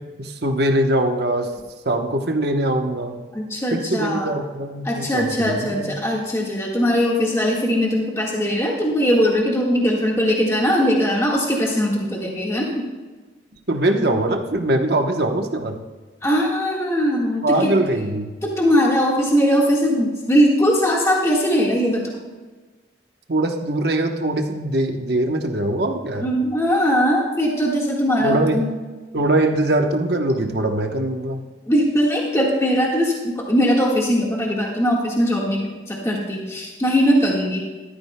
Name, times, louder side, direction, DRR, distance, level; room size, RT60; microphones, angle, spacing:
voice 1, 0.2-1.5 1.8-3.2 3.7-5.9 13.7-15.8 17.4-18.3 23.3-26.3 28.2-28.6 29.1-31.4, right 1 dB, 60° right, 4 dB, 1.0 m, -22 dB
voice 2, 3.3-4.3 4.8-12.7 16.2-17.7 18.4-22.1 26.2-28.7 31.7-37.6, equal, 15° left, -3 dB, 1.6 m, -20 dB
15.0 x 13.0 x 2.2 m, 1.3 s
head